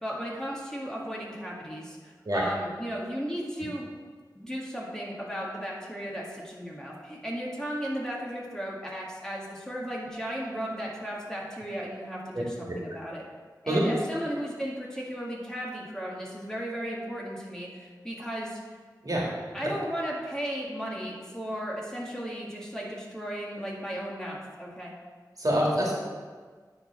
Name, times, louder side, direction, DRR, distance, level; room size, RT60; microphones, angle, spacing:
voice 1, 0.0-3.9 4.4-13.2 13.6-18.6 19.5-24.9, equal, 10° left, -4 dB, 1.9 m, -35 dB
voice 2, 12.3-12.7 13.7-13.8 19.0-19.3 25.4-25.9, equal, 55° right, -4 dB, 2.1 m, -26 dB
9.9 x 3.9 x 5.3 m, 1.5 s
wide cardioid pair, 50°, 8 cm